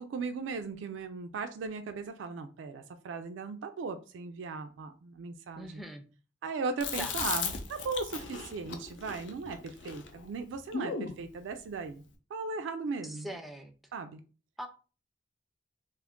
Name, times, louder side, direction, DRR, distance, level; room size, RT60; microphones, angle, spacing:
voice 1, 0.0-5.8 6.4-12.0 12.3-13.3 13.9-14.2, right 4 dB, 90° right, 0.3 m, -37 dB
voice 2, 5.6-6.0 7.0-7.2 13.0-13.7 14.6-14.7, right 1 dB, ahead, 0.3 m, -41 dB
Chewing mastication, 6.8-11.2, left 5 dB, 80° left, 0.5 m, -37 dB
2.5 x 2.4 x 3.5 m
head